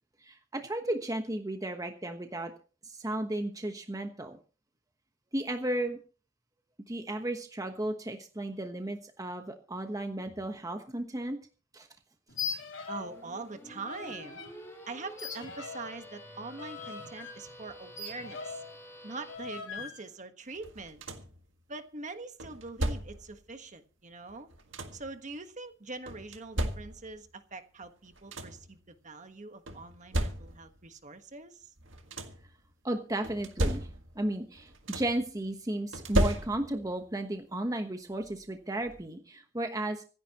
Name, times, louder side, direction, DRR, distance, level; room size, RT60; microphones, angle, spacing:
voice 1, 0.2-2.5 2.8-4.4 5.3-6.0 6.9-11.4 11.7-11.9 32.8-33.9 34.1-40.0, right 1 dB, 20° right, 5 dB, 1.1 m, -34 dB
sound 1, 12.3-13.2 13.4-14.5 15.2-18.8 19.3-20.0, left 5 dB, 85° left, 3.2 m, -41 dB
voice 2, 12.9-14.4 14.9-18.5 19.0-21.0 21.7-24.5 24.9-31.7, right 3 dB, 40° right, 7 dB, 1.4 m, -43 dB
sound 2, 13.0-19.4, equal, 15° left, 4.4 m, -49 dB
sound 3, 20.6-21.4 22.4-23.4 24.3-25.2 26.1-27.3 27.8-27.9 28.1-28.7 29.7-30.8 31.8-32.5 33.2-34.3 34.5-35.3 35.9-36.9 38.2-38.3 38.8-39.0, right 1 dB, 85° right, 1.8 m, -34 dB
25.5 x 10.5 x 3.0 m, 0.38 s
head